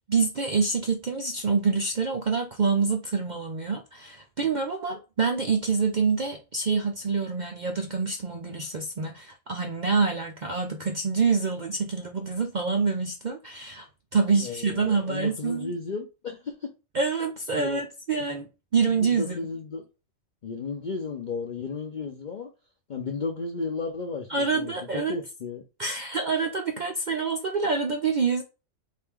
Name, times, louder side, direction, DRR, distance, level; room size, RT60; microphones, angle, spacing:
voice 1, 0.0-13.9 14.1-15.7 16.9-18.5 18.7-19.5 24.3-25.2 25.8-28.4, right 4 dB, 85° right, 0.4 m, -26 dB
voice 2, 14.4-16.7 17.6-17.8 18.9-19.8 20.4-22.5 22.9-25.6, left 4 dB, 60° left, 0.5 m, -34 dB
4.5 x 2.6 x 3.5 m
omnidirectional pair, 1.5 m